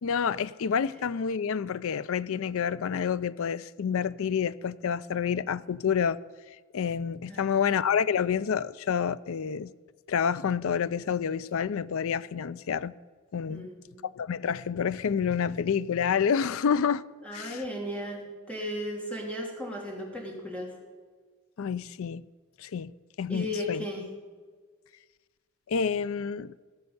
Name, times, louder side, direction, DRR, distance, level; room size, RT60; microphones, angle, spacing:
voice 1, 0.0-6.2 6.7-9.7 10.1-12.9 13.3-13.7 14.1-17.0 17.3-17.6 21.6-22.2 22.6-22.9 23.2-23.8 25.7-26.6, left 7 dB, 70° left, 0.4 m, -28 dB
voice 2, 7.3-7.6 13.5-14.0 17.2-20.7 23.3-24.1, left 1 dB, 5° left, 2.8 m, -36 dB
16.5 x 6.6 x 7.0 m
head